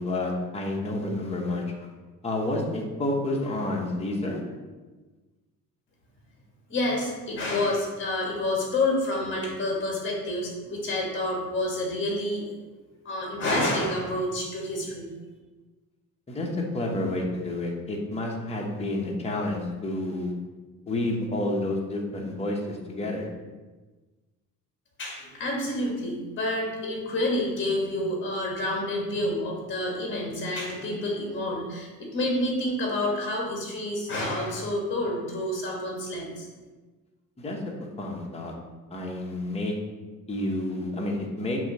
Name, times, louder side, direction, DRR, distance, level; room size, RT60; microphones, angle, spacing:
voice 1, 0.0-1.6 2.2-4.4 16.3-20.3 20.9-23.3 37.4-37.6 38.0-38.5 38.9-39.7 40.3-41.6, left 1 dB, 20° left, -1 dB, 0.9 m, -29 dB
voice 2, 6.7-12.5 13.0-15.1 25.0-36.5, left 1 dB, 35° left, -1 dB, 1.7 m, -28 dB
6.4 x 2.8 x 5.3 m, 1.3 s
cardioid pair, 145°, 34 cm